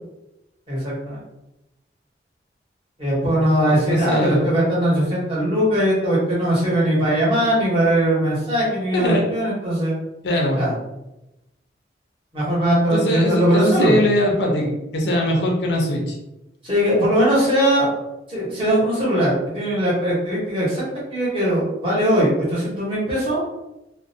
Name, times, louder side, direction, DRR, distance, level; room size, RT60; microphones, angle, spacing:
voice 1, 0.7-1.2 3.0-10.0 10.6-10.7 12.3-14.0 16.6-17.9 18.3-20.8 21.1-23.4, right 1 dB, 30° right, -7 dB, 1.0 m, -20 dB
voice 2, 3.7-4.5 8.9-9.3 10.2-10.6 12.9-16.2, left 1 dB, 80° left, 0 dB, 0.6 m, -21 dB
2.4 x 2.1 x 2.6 m, 0.94 s
head